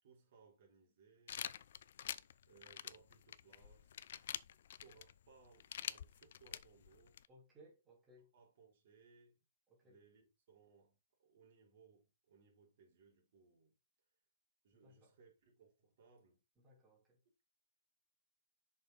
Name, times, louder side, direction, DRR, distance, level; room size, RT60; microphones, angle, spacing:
voice 1, 0.0-1.5 2.4-3.9 4.8-7.2 8.3-9.4 9.8-13.8 14.6-16.4, right 5 dB, 55° right, 3.3 m, -66 dB
sound 1, 1.3-7.3, left 10 dB, 60° left, 0.4 m, -47 dB
voice 2, 7.3-8.3 9.7-10.0 14.8-15.1 16.6-17.2, equal, 10° right, 3.1 m, -64 dB
6.6 x 5.0 x 4.0 m
hypercardioid pair, 160°, 0 cm